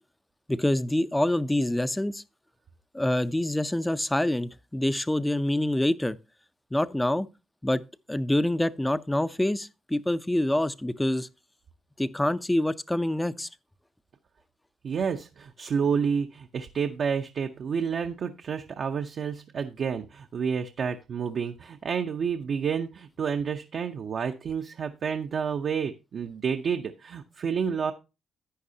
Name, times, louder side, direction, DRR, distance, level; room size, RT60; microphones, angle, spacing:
voice 1, 0.5-2.2 2.9-6.2 6.7-7.3 7.6-7.8 8.1-11.3 12.0-13.5, left 1 dB, 10° left, 0.5 m, -26 dB
voice 2, 14.8-27.9, right 6 dB, 55° right, 0.7 m, -29 dB
11.5 x 8.8 x 2.8 m
cardioid pair, 90°, 0 cm